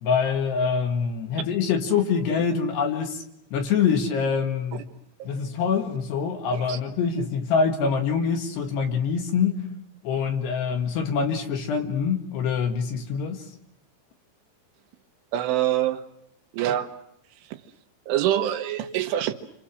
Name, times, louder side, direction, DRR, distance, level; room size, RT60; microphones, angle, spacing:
voice 1, 0.0-3.2 3.5-4.9 5.3-9.6 10.0-13.4, left 6 dB, 65° left, 3.6 m, -25 dB
voice 2, 15.3-16.0 16.5-16.9 18.1-19.3, right 12 dB, 80° right, 3.5 m, -25 dB
28.5 x 26.5 x 6.3 m
omnidirectional pair, 5.7 m